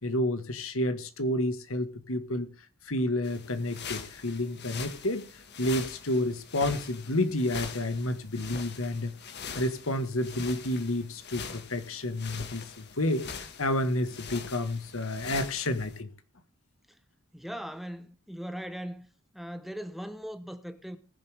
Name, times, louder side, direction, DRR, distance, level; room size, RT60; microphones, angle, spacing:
voice 1, 0.0-2.5 2.9-5.3 5.6-9.1 9.6-16.1, left 1 dB, 70° left, 1.7 m, -30 dB
sound 1, 3.2-16.0, left 5 dB, 55° left, 1.8 m, -43 dB
voice 2, 17.3-19.1 19.3-21.0, equal, ahead, 1.1 m, -39 dB
20.5 x 7.4 x 3.5 m
head